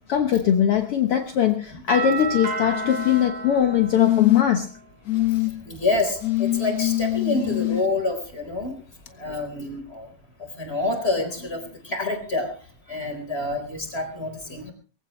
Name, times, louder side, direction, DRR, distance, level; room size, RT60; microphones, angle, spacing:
voice 1, 0.1-4.7, left 9 dB, 60° left, 6 dB, 1.8 m, -21 dB
Doorbell, 1.9-4.7, right 3 dB, 85° right, 7.8 m, -31 dB
sound 1, 2.7-3.3 4.0-4.6 5.1-5.5 6.2-7.8 9.1-9.2, left 15 dB, 40° left, 1.4 m, -24 dB
voice 2, 5.1-10.1 10.4-14.7, left 2 dB, 20° left, 5 dB, 4.4 m, -28 dB
22.0 x 16.0 x 3.2 m, 0.36 s
omnidirectional pair, 3.3 m